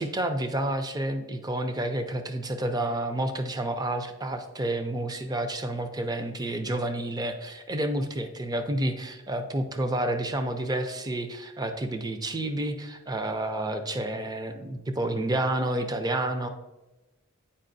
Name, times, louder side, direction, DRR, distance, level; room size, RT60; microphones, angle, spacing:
voice 1, 0.0-16.5, right 1 dB, 20° right, 7 dB, 0.5 m, -30 dB
8.6 x 4.8 x 2.6 m, 1.1 s
head